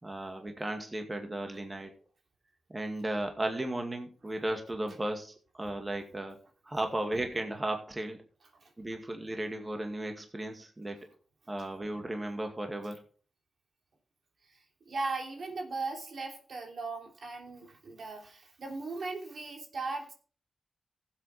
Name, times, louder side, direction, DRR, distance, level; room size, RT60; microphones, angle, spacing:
voice 1, 0.0-1.9 2.7-6.4 6.7-8.2 8.8-11.1 11.5-13.0, right 1 dB, 30° right, 4 dB, 2.1 m, -35 dB
voice 2, 14.4-20.1, right 3 dB, 70° right, 2 dB, 2.8 m, -38 dB
15.5 x 8.0 x 3.4 m, 0.41 s
cardioid pair, 45°, 0 cm